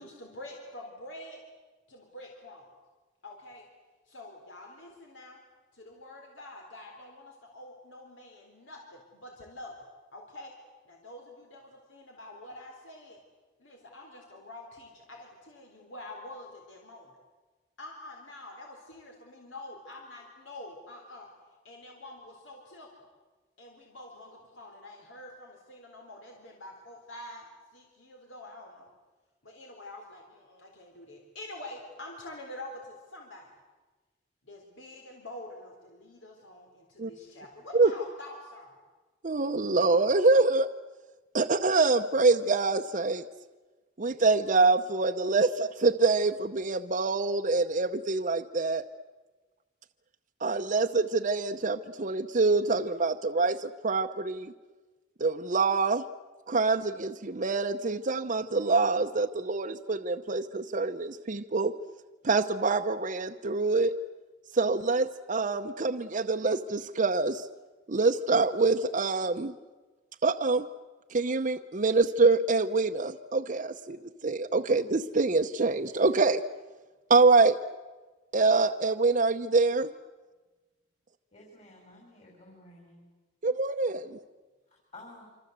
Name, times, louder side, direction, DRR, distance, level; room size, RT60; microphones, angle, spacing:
voice 1, 0.0-1.4 1.9-2.7 3.2-3.7 4.1-5.4 5.7-9.9 10.1-10.6 10.8-13.2 13.6-17.2 17.8-21.3 21.6-23.1 23.6-28.9 29.4-33.5 34.4-38.8, left 1 dB, 85° left, 1 dB, 3.9 m, -46 dB
voice 2, 39.2-40.7 41.3-43.2 44.0-48.8 50.4-54.5 55.2-56.0 56.5-61.7 62.2-63.9 64.5-67.4 67.9-69.5 70.2-70.7 71.1-74.0 74.2-76.4 77.1-77.6 78.3-79.9 83.4-84.2, right 3 dB, 40° right, 5 dB, 0.8 m, -25 dB
voice 3, 81.3-83.1 84.7-85.3, left 2 dB, 40° left, 0 dB, 5.8 m, -52 dB
27.0 x 26.0 x 8.1 m, 1.3 s
head